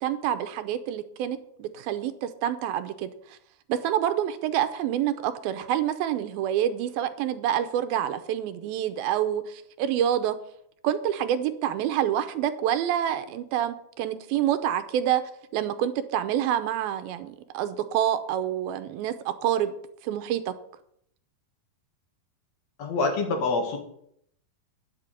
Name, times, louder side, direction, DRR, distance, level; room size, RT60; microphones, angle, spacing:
voice 1, 0.0-3.4 3.7-10.4 10.8-15.2 15.5-19.8 20.0-20.5, right 10 dB, 90° right, 11 dB, 2.6 m, -27 dB
voice 2, 22.8-23.8, left 3 dB, 55° left, 4 dB, 2.4 m, -26 dB
10.5 x 5.9 x 8.3 m, 0.70 s
omnidirectional pair, 4.2 m